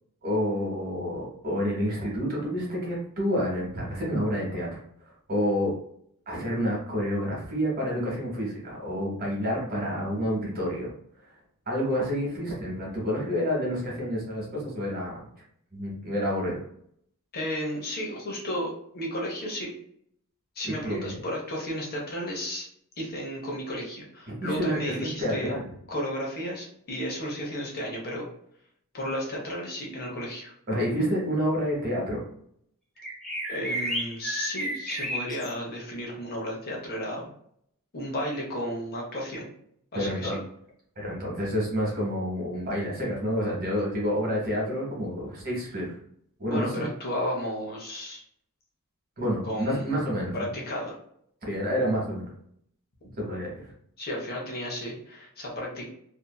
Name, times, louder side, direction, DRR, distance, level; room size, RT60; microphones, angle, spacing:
voice 1, 0.2-4.8 5.3-5.7 6.3-10.9 11.7-15.3 15.7-16.6 20.6-21.2 24.3-25.7 30.7-32.2 39.9-40.4 41.0-46.0 46.4-46.9 49.2-50.5 51.5-52.3 53.2-53.5, equal, 40° right, -3 dB, 1.1 m, -29 dB
voice 2, 17.3-19.7 20.6-22.7 23.0-25.5 25.9-28.3 28.9-30.5 33.5-37.3 37.9-39.5 39.9-40.4 46.5-48.2 49.4-50.0 50.3-50.9 53.0-53.1 54.0-55.8, equal, 45° left, -2 dB, 0.8 m, -33 dB
sound 1, 33.0-35.5, equal, ahead, 0.8 m, -32 dB
2.7 x 2.5 x 2.2 m, 0.68 s
head